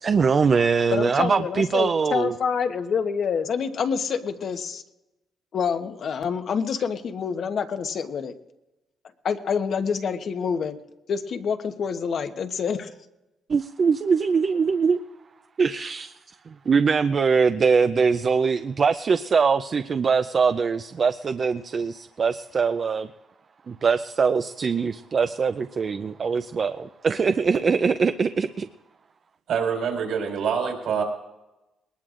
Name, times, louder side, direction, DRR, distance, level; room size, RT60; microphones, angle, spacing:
voice 1, 0.0-2.3 13.5-15.0 15.6-16.1 16.5-23.1 23.7-28.7, right 5 dB, 45° right, 9 dB, 0.5 m, -22 dB
voice 2, 0.9-4.8 5.5-8.3 9.2-10.8 11.1-12.9, left 6 dB, 60° left, 7 dB, 1.1 m, -27 dB
voice 3, 29.5-31.0, right 6 dB, 75° right, 2 dB, 4.4 m, -25 dB
21.0 x 19.5 x 2.5 m, 1.0 s
cardioid pair, 90°, 0 cm